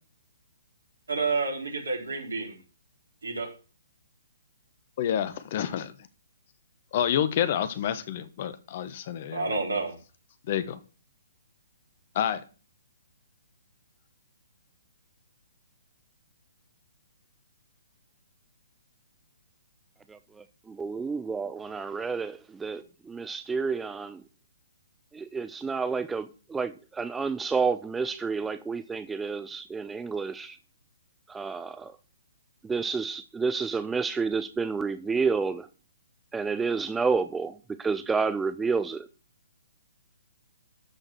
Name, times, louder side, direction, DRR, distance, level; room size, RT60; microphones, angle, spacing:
voice 1, 1.1-2.5 3.2-3.5 9.3-9.9, right 3 dB, 80° right, 4.4 m, -29 dB
voice 2, 5.0-5.9 6.9-9.5 10.5-10.8 12.1-12.4, left 9 dB, 45° left, 1.3 m, -28 dB
voice 3, 20.7-24.2 25.1-30.6 31.3-31.9 32.6-35.7 36.3-37.5 37.8-39.1, right 5 dB, 10° right, 0.5 m, -30 dB
13.5 x 5.0 x 6.1 m
figure-of-eight pair, 135°, 0 cm